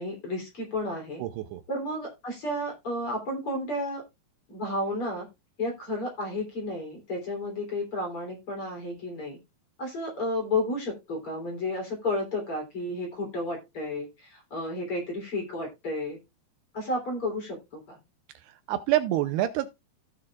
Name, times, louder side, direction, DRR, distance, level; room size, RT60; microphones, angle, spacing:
voice 1, 0.0-1.2 1.7-4.0 4.5-5.3 5.6-9.4 9.8-16.2 16.7-18.0, left 1 dB, 35° left, 3.6 m, -32 dB
voice 2, 1.2-1.6 18.7-19.7, right 13 dB, 80° right, 2.6 m, -26 dB
16.0 x 6.3 x 2.4 m
omnidirectional pair, 5.0 m